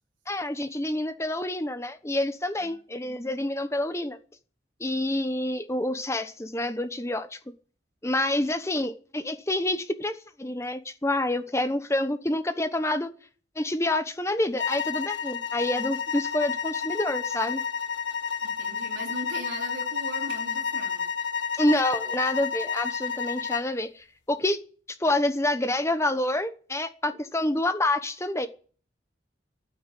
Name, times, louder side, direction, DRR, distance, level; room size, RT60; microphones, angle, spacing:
voice 1, 0.3-4.2 4.8-7.4 8.0-13.1 13.6-17.6 21.6-24.6 25.0-28.5, left 1 dB, 15° left, 1.0 m, -27 dB
sound 1, 14.6-23.7, left 6 dB, 80° left, 1.3 m, -31 dB
voice 2, 18.4-21.1, right 1 dB, 85° right, 4.2 m, -39 dB
12.0 x 9.7 x 10.0 m
head